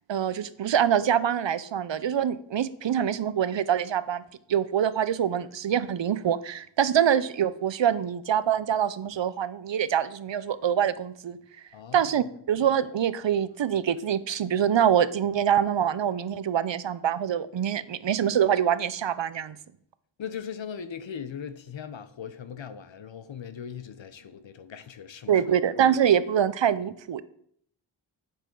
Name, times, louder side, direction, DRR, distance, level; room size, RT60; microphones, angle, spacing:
voice 1, 0.1-4.2 4.5-11.4 11.9-19.6 25.3-27.2, right 9 dB, 60° right, 0.6 m, -25 dB
voice 2, 11.7-12.3 20.2-25.5, left 7 dB, 65° left, 0.8 m, -39 dB
8.7 x 7.5 x 3.8 m
cardioid pair, 40°, 49 cm